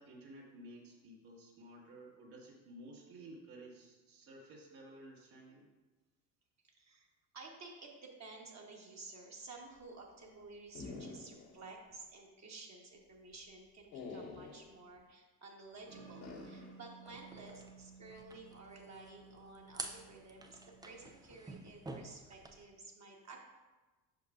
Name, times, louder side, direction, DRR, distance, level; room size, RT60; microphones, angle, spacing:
voice 1, 0.0-5.7, right 1 dB, 65° right, -3 dB, 1.9 m, -54 dB
voice 2, 6.6-7.1 7.3-20.6 20.8-23.4, right 3 dB, 35° right, -1 dB, 1.3 m, -53 dB
sound 1, 10.7-11.6 11.9-12.0 13.9-14.7 16.2-16.7, left 3 dB, 75° left, 1.9 m, -47 dB
sound 2, 15.8-21.1, right 4 dB, 85° right, 1.5 m, -57 dB
sound 3, 17.1-22.6, right 2 dB, 10° right, 0.4 m, -50 dB
7.8 x 5.9 x 2.4 m, 1.2 s
hypercardioid pair, 65°, 50 cm